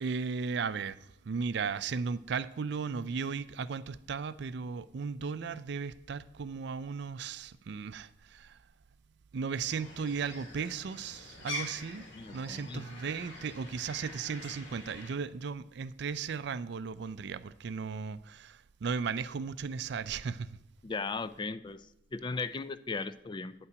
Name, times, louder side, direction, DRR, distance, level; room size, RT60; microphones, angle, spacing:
voice 1, 0.0-8.6 9.3-12.1 12.3-20.5, right 5 dB, 60° right, 0.4 m, -36 dB
sound 1, 9.7-15.1, left 1 dB, 80° left, 2.7 m, -45 dB
voice 2, 12.1-12.8 20.8-21.9 22.1-23.5, left 4 dB, 25° left, 0.3 m, -37 dB
9.2 x 5.7 x 7.9 m
head